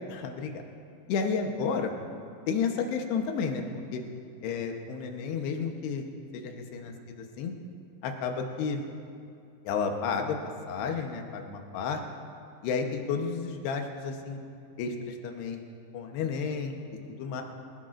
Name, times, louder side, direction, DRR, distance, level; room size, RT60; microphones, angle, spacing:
voice 1, 0.1-0.6 1.1-1.9 2.5-3.6 3.9-4.0 4.4-6.0 6.3-7.5 8.0-8.8 9.6-10.4 10.7-12.0 12.6-14.4 14.8-15.6 15.9-16.8 17.1-17.4, left 5 dB, 85° left, 3 dB, 3.1 m, -31 dB
24.5 x 16.5 x 2.5 m, 2.6 s
omnidirectional pair, 4.6 m